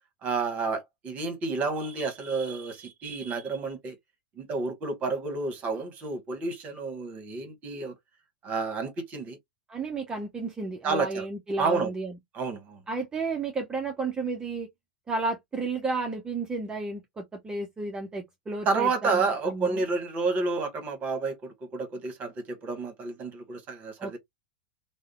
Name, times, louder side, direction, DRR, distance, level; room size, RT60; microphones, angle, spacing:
voice 1, 0.2-3.9 4.4-8.0 8.4-9.4 10.8-11.3 11.6-11.9 12.3-12.8 18.6-24.2, right 4 dB, 35° right, 1.1 m, -30 dB
voice 2, 9.7-12.1 12.9-14.7 15.1-19.8 24.0-24.2, right 3 dB, 15° right, 0.6 m, -32 dB
2.6 x 2.1 x 2.3 m
hypercardioid pair, 105°, 5 cm